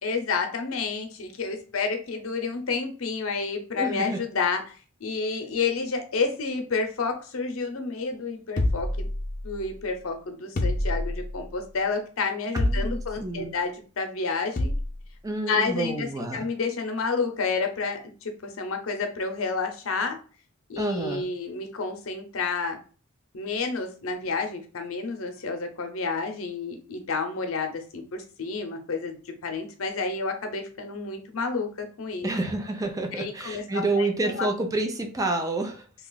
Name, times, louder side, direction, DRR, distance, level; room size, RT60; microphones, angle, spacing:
voice 1, 0.0-4.7 5.0-9.1 9.4-14.7 15.5-20.2 20.7-22.8 23.3-29.2 29.4-32.3 33.2-34.1 34.4-34.5, left 4 dB, 85° left, 5 dB, 0.7 m, -30 dB
voice 2, 3.8-4.2 12.5-13.5 15.2-16.5 20.8-21.3 32.2-35.8, right 2 dB, 15° right, 3 dB, 0.5 m, -29 dB
sound 1, 8.6-9.7 10.6-11.5 12.6-13.3 14.6-15.0, left 1 dB, 40° left, 0.5 m, -27 dB
2.8 x 2.4 x 3.9 m, 0.38 s
head